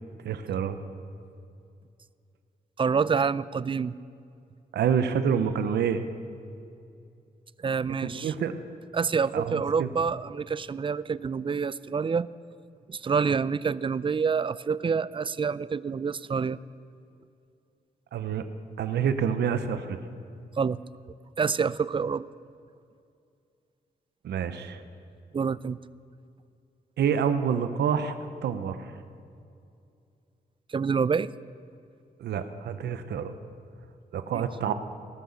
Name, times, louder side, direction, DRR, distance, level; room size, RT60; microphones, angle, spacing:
voice 1, 0.2-0.8 4.7-6.0 8.0-8.6 9.3-9.9 18.1-18.4 18.8-20.0 24.2-24.8 27.0-28.1 28.4-28.9 32.2-33.4 34.1-34.7, right 7 dB, 85° right, 10 dB, 0.7 m, -27 dB
voice 2, 2.8-3.9 7.6-8.3 8.9-12.3 12.9-16.6 20.6-20.8 21.4-22.2 25.3-25.8 30.7-31.3 34.3-34.4, right 5 dB, 30° right, 18 dB, 0.4 m, -27 dB
18.0 x 6.4 x 7.0 m, 2.5 s
cardioid pair, 55°, 17 cm